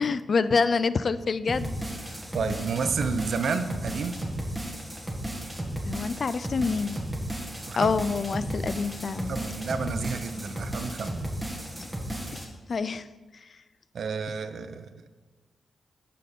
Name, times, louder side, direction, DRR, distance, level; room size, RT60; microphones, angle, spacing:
voice 1, 0.0-1.7 5.9-7.0 7.8-9.3 11.8-11.9 12.3-13.1, left 4 dB, 55° left, 15 dB, 0.4 m, -27 dB
sound 1, 1.5-12.4, right 1 dB, 10° right, 1.7 m, -34 dB
voice 2, 2.3-4.2 7.7-8.0 9.3-11.2 13.9-14.9, right 5 dB, 75° right, 9 dB, 0.6 m, -30 dB
10.0 x 4.2 x 5.3 m, 1.3 s
cardioid pair, 65°, 0 cm